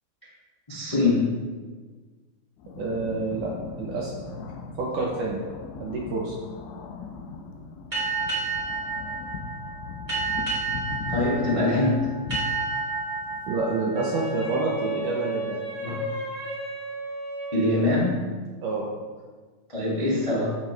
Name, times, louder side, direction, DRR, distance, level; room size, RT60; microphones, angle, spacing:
voice 1, 0.7-1.3 11.1-12.1 15.8-16.0 17.5-18.2 19.7-20.6, left 2 dB, 35° left, -8 dB, 0.5 m, -23 dB
sound 1, 2.6-13.5, left 4 dB, 80° left, 2.5 m, -39 dB
voice 2, 2.8-4.1 4.8-5.4 5.8-6.4 13.5-15.6 18.6-18.9, right 3 dB, 75° right, -3 dB, 1.9 m, -28 dB
sound 2, 7.9-15.2, right 3 dB, 45° right, 0.6 m, -31 dB
Wind instrument woodwind instrument, 13.9-18.0, right 2 dB, 30° right, 2.4 m, -33 dB
15.0 x 5.2 x 3.2 m, 1.4 s
omnidirectional pair, 4.8 m